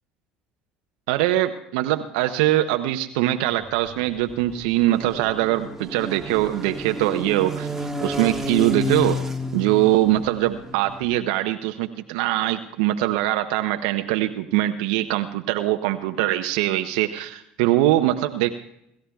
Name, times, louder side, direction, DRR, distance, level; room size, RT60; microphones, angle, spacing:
voice 1, 1.1-7.7 8.0-9.2 9.5-18.5, right 15 dB, 75° right, 7 dB, 0.7 m, -22 dB
sound 1, 3.5-11.1, equal, 5° right, 1.5 m, -31 dB
27.5 x 14.0 x 2.3 m, 0.80 s
hypercardioid pair, 65°, 4 cm